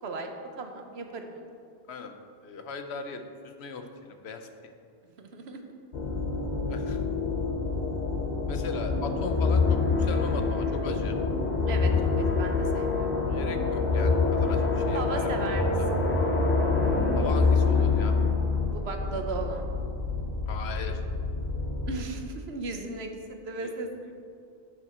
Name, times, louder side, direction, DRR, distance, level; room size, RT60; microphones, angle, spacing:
voice 1, 0.0-1.5 5.0-5.7 11.7-13.4 14.9-16.0 18.7-19.7 21.9-24.1, right 3 dB, 70° right, 5 dB, 1.1 m, -37 dB
voice 2, 2.4-4.7 6.7-7.0 8.5-11.2 13.3-15.9 17.2-18.2 20.5-21.0 23.6-23.7, left 4 dB, 70° left, 7 dB, 1.0 m, -38 dB
sound 1, 5.9-21.9, left 3 dB, 40° left, 1.0 m, -30 dB
sound 2, 8.8-18.3, left 4 dB, 20° left, 0.4 m, -27 dB
9.2 x 7.3 x 4.3 m, 2.4 s
omnidirectional pair, 1.1 m